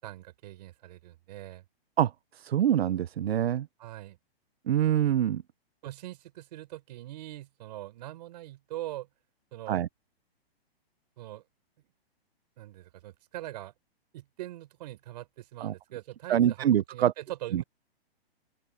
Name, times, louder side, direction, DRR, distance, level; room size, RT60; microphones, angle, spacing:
voice 1, 0.0-1.6 3.8-4.2 5.8-9.1 9.5-9.8 11.2-11.4 12.6-13.7 14.1-17.6, right 15 dB, 40° right, 6.3 m, -42 dB
voice 2, 2.0-3.7 4.7-5.4 9.7-9.9 15.6-15.7 16.3-17.1 17.5-17.6, right 10 dB, 75° right, 0.8 m, -25 dB
open air
hypercardioid pair, 165°, 31 cm